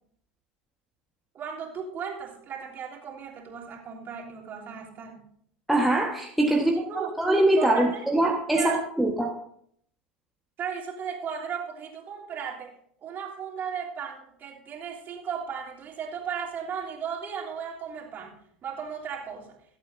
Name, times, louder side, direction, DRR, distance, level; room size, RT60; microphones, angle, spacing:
voice 1, 1.3-5.3 6.5-7.1 7.6-8.1 8.5-8.8 10.6-12.7 13.0-19.5, right 7 dB, 35° right, -3 dB, 3.3 m, -36 dB
voice 2, 5.7-6.8 7.2-9.4, right 1 dB, ahead, -1 dB, 1.4 m, -23 dB
23.0 x 8.4 x 2.7 m, 0.68 s
hypercardioid pair, 80°, 5 cm